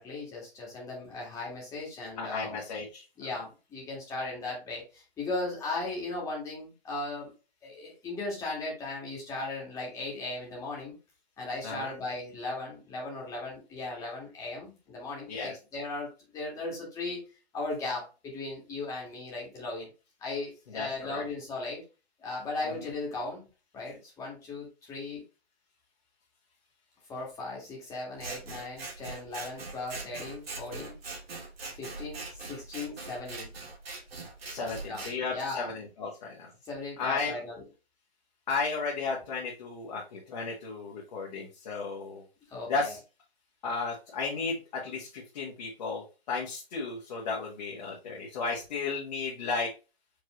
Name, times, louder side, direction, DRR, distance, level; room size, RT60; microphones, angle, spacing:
voice 1, 0.0-2.6 3.2-7.3 7.6-10.9 11.4-17.2 17.5-19.9 20.2-21.8 22.2-23.4 23.7-25.2 27.1-31.0 31.7-33.5 34.6-35.7 36.6-37.6 42.5-42.9, left 2 dB, 10° left, -3 dB, 1.7 m, -37 dB
voice 2, 2.2-3.0 11.6-11.9 15.3-15.6 20.7-21.2 34.5-36.5 37.0-37.3 38.5-42.2 42.7-43.0 43.6-49.7, left 4 dB, 40° left, -3 dB, 1.4 m, -34 dB
Scissors, 28.2-35.1, right 3 dB, 65° right, 2.1 m, -42 dB
5.0 x 3.5 x 3.0 m, 0.31 s
hypercardioid pair, 155°, 32 cm